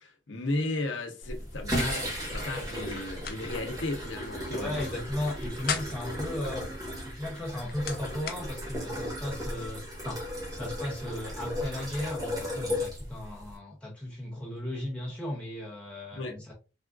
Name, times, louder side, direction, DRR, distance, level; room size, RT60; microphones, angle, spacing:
voice 1, 0.0-4.9 16.1-16.4, left 2 dB, 90° left, 0.8 m, -34 dB
sound 1, 1.2-13.6, equal, 20° right, 1.0 m, -35 dB
sound 2, 2.9-3.4 3.7-3.8 5.3-6.1 7.3-8.4, left 6 dB, 50° left, 0.5 m, -36 dB
voice 2, 4.6-6.7 7.1-10.2 10.5-16.5, left 1 dB, 5° left, 0.6 m, -36 dB
3.4 x 2.4 x 2.3 m
head